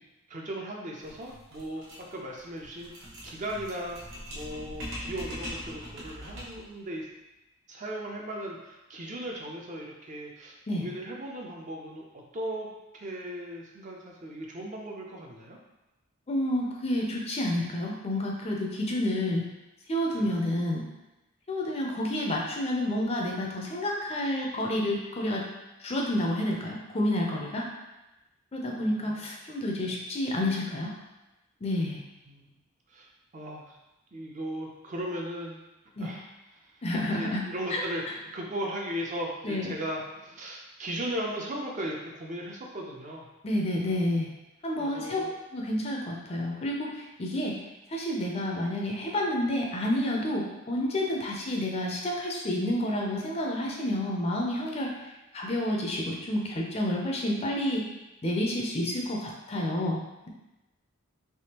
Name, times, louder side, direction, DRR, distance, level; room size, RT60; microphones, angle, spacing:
voice 1, 0.3-2.9 3.2-4.0 4.3-7.1 7.7-12.7 12.9-15.6 20.1-20.3 28.6-29.2 29.8-29.9 32.3-32.4 32.9-33.8 34.1-35.6 36.0-36.2 36.5-36.7 37.1-43.3 44.8-45.3, right 1 dB, 35° right, -1 dB, 0.5 m, -37 dB
sound 1, 1.0-6.7, equal, 60° right, 0.9 m, -41 dB
voice 2, 16.3-19.4 19.9-20.8 21.5-25.5 25.8-27.7 28.5-30.9 31.6-32.0 36.0-36.1 36.8-37.4 37.7-37.8 39.4-39.7 43.4-44.3 44.6-45.2 45.5-47.6 47.9-54.9 55.3-57.9 58.2-60.0, left 1 dB, 30° left, -1 dB, 0.5 m, -29 dB
3.5 x 3.1 x 2.8 m, 1.0 s
head